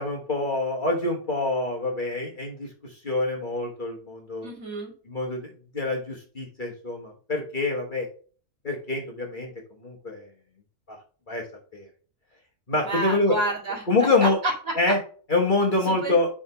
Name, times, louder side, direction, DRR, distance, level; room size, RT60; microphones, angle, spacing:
voice 1, 0.0-4.5 5.1-8.1 8.6-9.5 9.8-10.3 10.9-11.0 11.3-11.4 11.7-11.9 12.7-13.3 13.9-14.4 14.8-15.0 15.3-16.3, left 2 dB, 35° left, 0 dB, 1.4 m, -26 dB
voice 2, 4.4-4.9 12.8-14.7 15.8-16.2, right 2 dB, 65° right, -2 dB, 2.8 m, -29 dB
5.2 x 4.9 x 4.9 m, 0.41 s
omnidirectional pair, 1.6 m